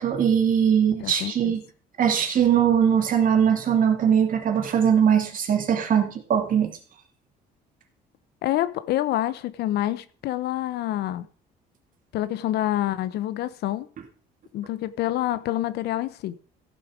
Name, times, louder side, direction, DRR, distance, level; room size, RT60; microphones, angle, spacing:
voice 1, 0.0-1.6 2.0-6.7, right 8 dB, 55° right, 2.5 m, -21 dB
voice 2, 1.0-1.5 8.4-11.3 12.1-13.9 14.5-16.3, left 13 dB, 75° left, 0.8 m, -27 dB
15.0 x 6.9 x 4.9 m
cardioid pair, 110°, 17 cm